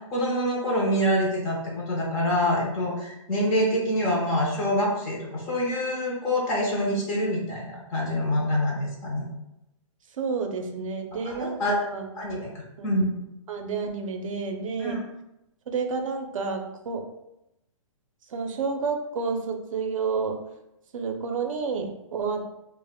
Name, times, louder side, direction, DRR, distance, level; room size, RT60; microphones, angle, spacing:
voice 1, 0.0-9.3 11.2-11.8 12.2-13.2 14.8-15.0, equal, 15° left, -3 dB, 0.4 m, -26 dB
voice 2, 10.2-12.1 12.8-12.9 13.5-15.0 15.7-16.6 16.9-17.0 18.3-20.4 20.9-22.4, right 5 dB, 70° right, 4 dB, 0.5 m, -30 dB
2.0 x 2.0 x 3.4 m, 0.87 s
hypercardioid pair, 155°, 17 cm